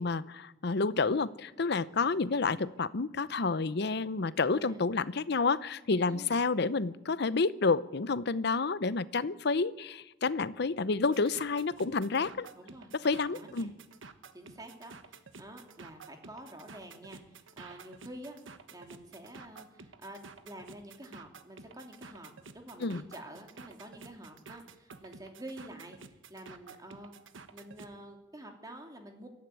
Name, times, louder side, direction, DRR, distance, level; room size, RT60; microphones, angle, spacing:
voice 1, 0.0-12.5 12.9-13.7 22.8-23.0, left 4 dB, 60° left, 16 dB, 0.7 m, -29 dB
voice 2, 4.5-4.8 6.1-6.3 12.6-12.9 13.3-13.7 14.3-18.4 18.7-26.0 26.3-27.1 27.5-29.3, right 1 dB, 20° right, 3 dB, 2.7 m, -48 dB
sound 1, 11.0-27.9, right 4 dB, 90° right, 1.3 m, -51 dB
22.5 x 13.5 x 9.4 m, 1.0 s
head